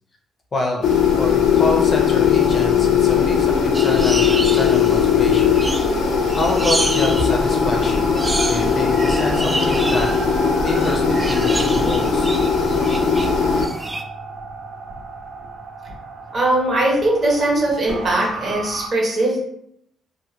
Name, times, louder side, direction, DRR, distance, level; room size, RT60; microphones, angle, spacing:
voice 1, 0.5-0.9 1.2-5.6 6.4-8.2 8.4-12.3, left 2 dB, 40° left, 1 dB, 0.6 m, -27 dB
sound 1, 0.8-13.7, left 6 dB, 75° left, 0.4 m, -18 dB
sound 2, 1.5-18.9, right 3 dB, 90° right, 1.0 m, -36 dB
sound 3, 3.7-14.0, right 2 dB, 20° right, 0.3 m, -29 dB
voice 2, 16.3-19.4, right 1 dB, 50° right, -3 dB, 1.1 m, -20 dB
2.6 x 2.5 x 2.8 m, 0.71 s
cardioid pair, 90°, 0 cm